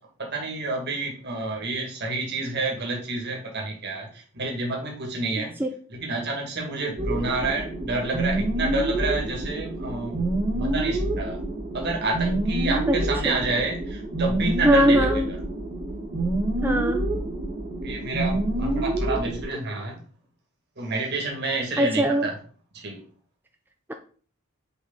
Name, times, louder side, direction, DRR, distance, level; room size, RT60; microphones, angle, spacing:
voice 1, 0.2-5.5 5.9-10.2 10.5-11.4 11.7-15.4 17.0-17.2 17.8-20.0 20.8-22.3 22.7-23.0, right 2 dB, 50° right, 0 dB, 2.1 m, -29 dB
voice 2, 5.4-5.7 12.9-13.0 13.2-13.4 14.6-15.3 16.6-17.0 21.8-22.3, right 1 dB, 10° right, 5 dB, 0.4 m, -21 dB
sound 1, 7.0-19.4, right 1 dB, 35° right, 1.7 m, -27 dB
6.4 x 5.1 x 3.9 m, 0.42 s
head